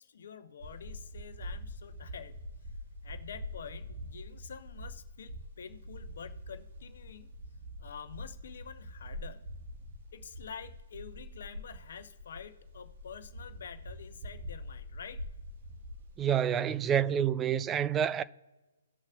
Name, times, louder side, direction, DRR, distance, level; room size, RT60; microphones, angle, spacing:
voice 1, 0.0-2.4 2.6-2.7 3.0-7.3 7.8-9.5 10.1-15.2, left 7 dB, 55° left, 0.9 m, -47 dB
sound 1, 0.6-16.2, equal, 50° right, 1.2 m, -45 dB
voice 2, 16.2-18.2, right 9 dB, 15° right, 0.3 m, -28 dB
18.0 x 6.6 x 2.4 m
figure-of-eight pair, 125°, 0 cm